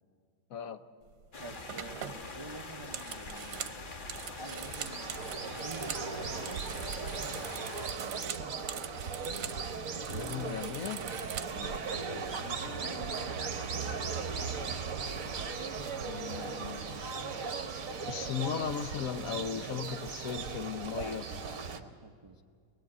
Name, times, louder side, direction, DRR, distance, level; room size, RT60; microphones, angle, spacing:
voice 1, 0.5-0.8 10.1-11.0 16.0-16.8 18.0-21.2, left 7 dB, 60° left, 10 dB, 1.2 m, -37 dB
sound 1, 1.1-1.3 1.7-6.1 6.4-9.6 9.9-11.8, right 9 dB, 75° right, 1.3 m, -43 dB
sound 2, 1.3-7.9, left 3 dB, 35° left, 1.2 m, -44 dB
voice 2, 1.4-3.9 4.2-6.5 7.5-8.3 11.5-13.6 20.9-22.4, right 2 dB, 30° right, 6 dB, 0.5 m, -48 dB
sound 3, 4.1-21.8, right 5 dB, 55° right, 1.4 m, -38 dB
22.5 x 20.0 x 8.5 m, 2.1 s
omnidirectional pair, 1.8 m